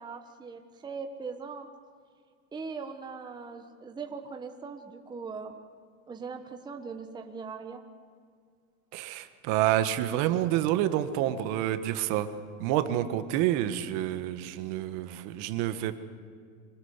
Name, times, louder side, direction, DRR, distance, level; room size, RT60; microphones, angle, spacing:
voice 1, 0.0-1.7 2.5-5.6 6.1-7.8, right 5 dB, 10° right, 4 dB, 1.2 m, -40 dB
voice 2, 8.9-12.3 12.6-16.0, right 12 dB, 45° right, 10 dB, 1.6 m, -28 dB
25.0 x 19.5 x 8.2 m, 2.2 s
supercardioid pair, 140°, 41 cm